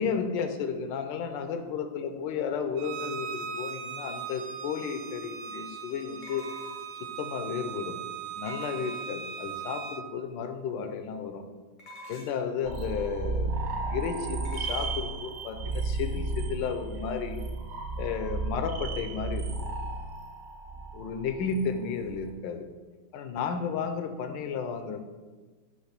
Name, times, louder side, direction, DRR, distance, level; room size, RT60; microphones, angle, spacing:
voice 1, 0.0-6.4 7.0-8.0 8.4-11.4 12.1-13.5 13.9-17.4 18.0-19.5 20.9-22.6 23.1-25.0, left 6 dB, 75° left, 7 dB, 1.2 m, -33 dB
Bowed string instrument, 2.8-10.0, right 6 dB, 80° right, 1.4 m, -39 dB
sound 1, 4.6-4.7 6.2-7.1 8.5-9.4 11.8-12.5 14.4-15.0, equal, 45° left, 0.6 m, -46 dB
sound 2, 12.6-22.3, right 3 dB, 60° right, 1.4 m, -34 dB
7.9 x 3.0 x 5.9 m, 1.3 s
omnidirectional pair, 2.2 m